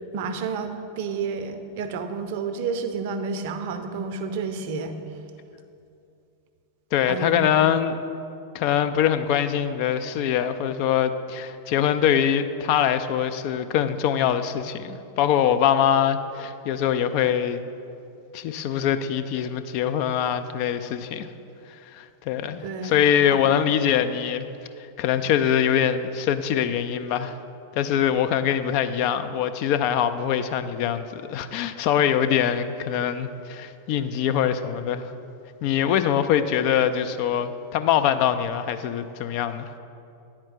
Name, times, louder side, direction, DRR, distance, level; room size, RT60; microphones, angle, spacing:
voice 1, 0.1-5.0 7.1-7.5 22.6-23.0 23.3-23.4, right 5 dB, 50° right, 8 dB, 0.6 m, -30 dB
voice 2, 6.9-8.0 8.5-17.6 18.3-21.3 21.9-24.5 25.0-27.4 27.7-35.1 35.6-39.7, left 9 dB, 45° left, 9 dB, 0.3 m, -23 dB
9.7 x 4.4 x 5.8 m, 2.6 s
figure-of-eight pair, 90°, 0 cm